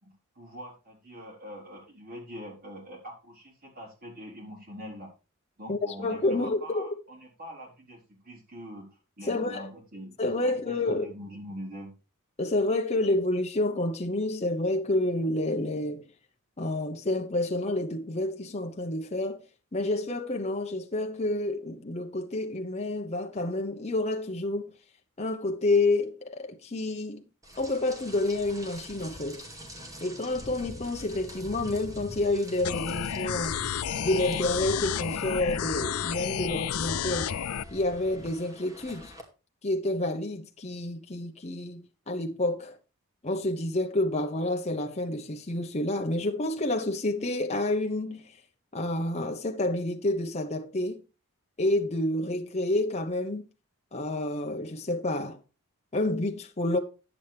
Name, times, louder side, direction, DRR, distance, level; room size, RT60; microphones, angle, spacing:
voice 1, 0.0-5.1 5.6-8.8 9.2-10.2 10.4-11.9, equal, 45° right, 4.2 m, -43 dB
voice 2, 5.7-7.0 9.3-9.7 10.2-11.1 12.4-16.0 16.6-19.4 19.7-24.7 25.2-27.2 27.6-29.5 30.0-33.6 34.0-37.4 37.7-39.1 39.6-42.8 43.2-48.3 48.7-51.0 51.6-53.4 53.9-55.4 55.9-56.8, left 2 dB, 30° left, 1.0 m, -29 dB
Rain, 27.4-39.2, equal, 15° right, 2.3 m, -44 dB
sound 1, 32.6-37.6, left 9 dB, 80° left, 0.5 m, -31 dB
10.5 x 8.5 x 3.4 m
head